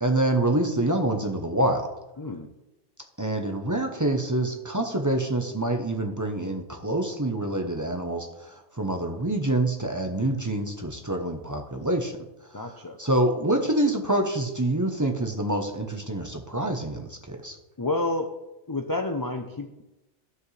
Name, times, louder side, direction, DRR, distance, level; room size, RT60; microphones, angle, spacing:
voice 1, 0.0-1.9 3.2-12.2 12.7-17.5, right 1 dB, 20° right, 3 dB, 0.7 m, -26 dB
voice 2, 2.2-2.5 12.5-13.0 17.8-18.3 18.7-19.8, left 2 dB, 30° left, 5 dB, 0.4 m, -29 dB
12.5 x 7.3 x 3.3 m, 0.98 s
omnidirectional pair, 1.3 m